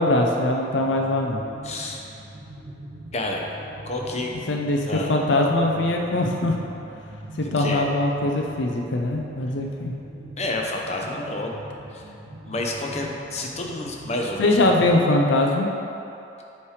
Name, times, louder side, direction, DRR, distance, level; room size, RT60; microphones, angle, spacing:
voice 1, 0.0-1.4 4.5-6.6 7.4-9.9 14.4-15.7, left 2 dB, 80° left, 1 dB, 0.5 m, -22 dB
sound 1, 0.7-15.0, right 1 dB, 50° right, 0.7 m, -42 dB
voice 2, 1.6-2.0 3.1-3.4 3.8-4.3 4.9-5.2 7.4-7.8 10.4-11.6 11.9-12.1 12.5-14.5, left 2 dB, 35° left, 0 dB, 0.6 m, -29 dB
8.4 x 3.2 x 4.8 m, 2.9 s
head